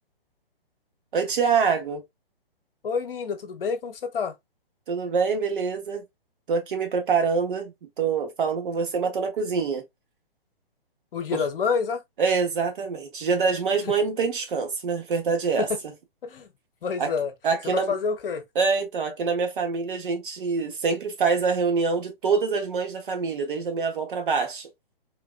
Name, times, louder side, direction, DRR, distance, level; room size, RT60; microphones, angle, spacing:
voice 1, 1.1-2.0 4.9-6.0 6.5-9.8 11.3-11.4 12.2-15.7 17.0-17.1 17.4-17.9 18.5-24.7, right 5 dB, 60° right, 1.1 m, -25 dB
voice 2, 2.8-4.3 11.1-12.0 15.6-15.8 16.2-16.5 16.8-17.3 17.6-18.4, left 5 dB, 65° left, 1.0 m, -27 dB
3.7 x 2.4 x 2.4 m
hypercardioid pair, 135°, 30 cm